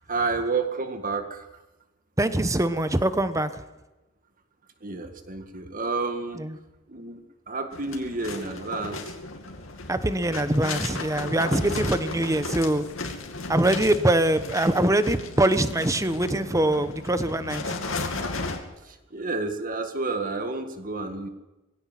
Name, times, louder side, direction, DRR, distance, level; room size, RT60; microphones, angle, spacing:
voice 1, 0.1-1.4 4.8-6.4 6.9-9.1 18.9-21.3, right 3 dB, 45° right, 7 dB, 2.0 m, -30 dB
voice 2, 2.2-3.6 6.3-6.6 9.9-12.8 13.5-17.7, right 1 dB, 15° right, 11 dB, 1.1 m, -23 dB
sound 1, 7.7-18.6, left 3 dB, 90° left, 2.5 m, -35 dB
20.5 x 16.5 x 7.7 m, 1.0 s
head